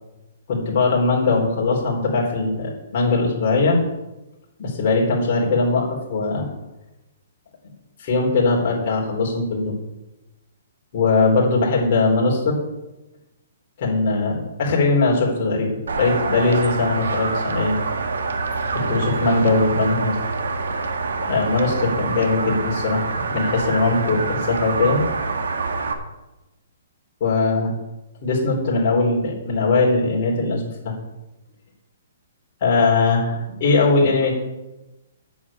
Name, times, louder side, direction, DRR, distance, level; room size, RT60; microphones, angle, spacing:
voice 1, 0.5-3.8 4.6-6.5 8.0-9.7 10.9-12.6 13.8-17.8 18.7-20.2 21.2-25.0 27.2-27.7 28.2-30.9 32.6-34.3, left 3 dB, 35° left, -2 dB, 3.7 m, -20 dB
sound 1, 15.9-25.9, right 4 dB, 85° right, 1.6 m, -26 dB
8.4 x 7.3 x 8.6 m, 1.0 s
hypercardioid pair, 170°, 0 cm